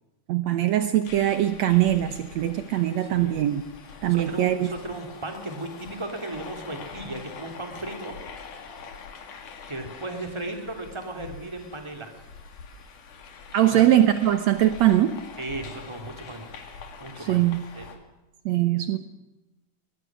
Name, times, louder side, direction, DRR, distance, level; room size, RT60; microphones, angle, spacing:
voice 1, 0.3-3.6 4.0-4.7 13.5-15.1 17.2-17.6 18.5-19.0, right 13 dB, 70° right, 9 dB, 2.1 m, -21 dB
sound 1, 1.1-18.0, left 5 dB, 85° left, 3.8 m, -44 dB
voice 2, 3.0-3.3 4.1-8.1 9.7-12.1 13.7-13.9 15.4-16.5 17.0-17.4 17.7-17.9, right 2 dB, 10° right, 4 dB, 2.9 m, -35 dB
22.5 x 20.5 x 6.3 m, 1.0 s
omnidirectional pair, 3.5 m